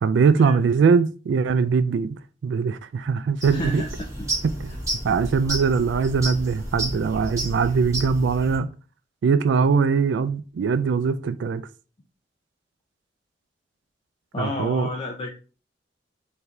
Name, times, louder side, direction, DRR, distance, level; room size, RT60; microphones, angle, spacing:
voice 1, 0.0-2.2 2.4-3.8 4.4-4.8 5.0-8.7 9.2-11.7 14.4-14.9, right 5 dB, 80° right, 0.3 m, -21 dB
sound 1, 3.4-8.6, right 1 dB, 20° right, 1.8 m, -31 dB
voice 2, 3.5-3.9 4.2-4.3 14.3-15.3, left 1 dB, 30° left, 0.5 m, -30 dB
4.6 x 2.7 x 3.2 m
head